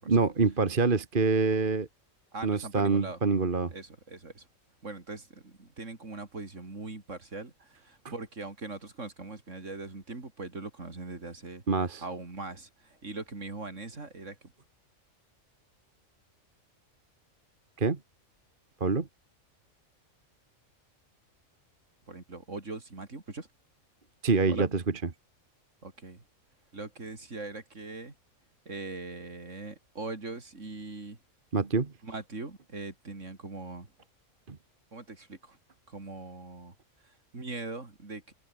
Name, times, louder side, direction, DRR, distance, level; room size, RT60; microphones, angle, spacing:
voice 1, 0.0-1.9 2.4-3.7 11.7-12.0 17.8-18.0 18.8-19.1 24.2-24.8 31.5-31.9 34.5-34.6, right 4 dB, 40° right, 1.7 m, -26 dB
voice 2, 2.3-3.2 3.7-4.5 4.8-14.5 22.1-23.5 24.5-24.7 25.8-26.2 26.7-28.1 28.7-31.2 32.0-33.9 34.9-35.6 35.9-36.7 37.0-38.3, right 3 dB, 60° right, 3.8 m, -41 dB
omnidirectional pair, 1.4 m